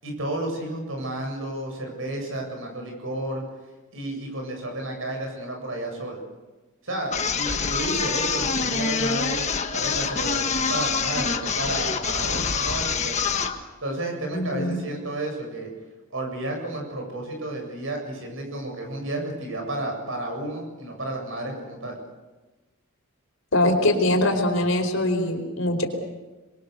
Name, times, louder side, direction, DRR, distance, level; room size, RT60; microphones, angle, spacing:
voice 1, 0.0-3.4 3.9-6.2 6.8-13.2 13.8-15.7 16.1-22.0, right 1 dB, 65° right, 2 dB, 7.8 m, -32 dB
sound 1, 7.1-13.6, left 5 dB, 30° left, 1.5 m, -26 dB
voice 2, 14.3-14.8 23.5-25.9, left 1 dB, 65° left, 5 dB, 4.5 m, -22 dB
27.0 x 22.5 x 6.7 m, 1.2 s
head